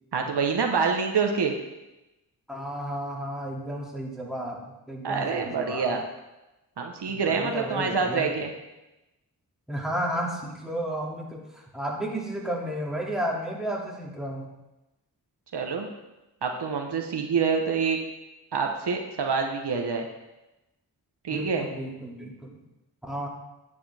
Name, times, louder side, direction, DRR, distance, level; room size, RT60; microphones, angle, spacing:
voice 1, 0.1-1.5 5.0-6.0 6.8-8.5 15.5-15.9 16.4-18.0 18.5-20.1 21.2-21.7, right 5 dB, 80° right, 3 dB, 1.1 m, -26 dB
voice 2, 2.5-6.0 7.1-8.3 9.7-11.4 11.7-14.5 21.3-22.6 23.1-23.3, right 1 dB, ahead, -3 dB, 2.6 m, -32 dB
9.8 x 8.5 x 3.5 m, 0.98 s
cardioid pair, 55°, 40 cm